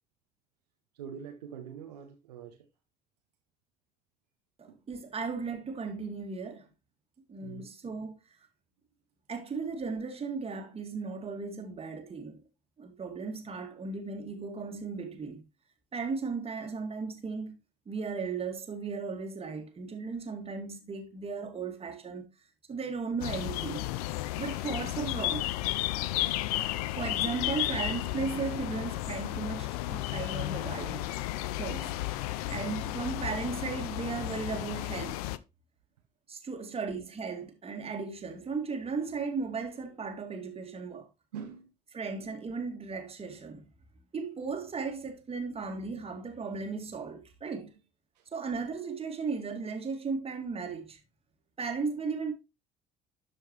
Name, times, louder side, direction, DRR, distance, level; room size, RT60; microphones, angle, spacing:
voice 1, 0.9-2.6 4.7-4.8 7.4-7.7 26.4-26.5 41.3-41.7 48.1-48.3, right 7 dB, 75° right, 1.0 m, -44 dB
voice 2, 4.6-6.7 7.3-8.2 9.3-12.4 12.8-15.4 15.9-17.5 17.9-22.3 22.7-23.9 24.4-25.5 27.0-31.1 31.5-32.0 32.5-35.2 36.3-41.1 41.9-43.7 44.1-47.7 48.3-51.0 51.6-52.3, right 4 dB, 30° right, 2.0 m, -36 dB
sound 1, 23.2-35.4, left 16 dB, 65° left, 0.5 m, -33 dB
12.5 x 5.1 x 3.0 m
figure-of-eight pair, 55°, 21 cm